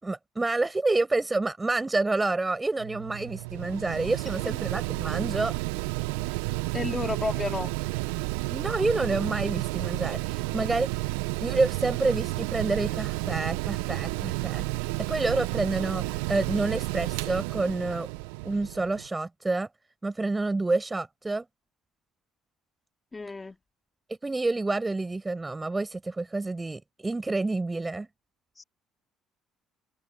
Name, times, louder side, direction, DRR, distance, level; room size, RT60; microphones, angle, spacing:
voice 1, 0.0-5.5 8.5-10.9 11.4-14.6 15.1-18.1 18.4-19.7 20.0-21.4 24.2-28.1, right 2 dB, 20° right, 6.5 m, -28 dB
Mechanical fan, 2.8-19.1, right 25 dB, 80° right, 0.7 m, -31 dB
voice 2, 6.7-7.7 23.1-23.6 28.6-28.7, left 3 dB, 25° left, 2.5 m, -32 dB
hypercardioid pair, 55°, 0 cm